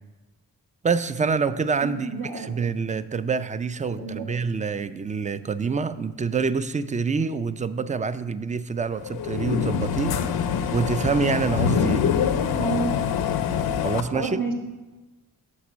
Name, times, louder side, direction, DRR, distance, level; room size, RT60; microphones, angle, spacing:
voice 1, 0.8-10.1 10.7-12.1 13.8-14.4, right 5 dB, 20° right, 14 dB, 0.3 m, -26 dB
voice 2, 1.8-2.5 3.9-4.3 12.5-12.9 14.1-14.5, right 4 dB, 60° right, 0 dB, 1.6 m, -29 dB
sound 1, 9.0-14.0, left 7 dB, 70° left, 0.5 m, -25 dB
6.0 x 4.1 x 6.1 m, 1.2 s
cardioid pair, 45°, 38 cm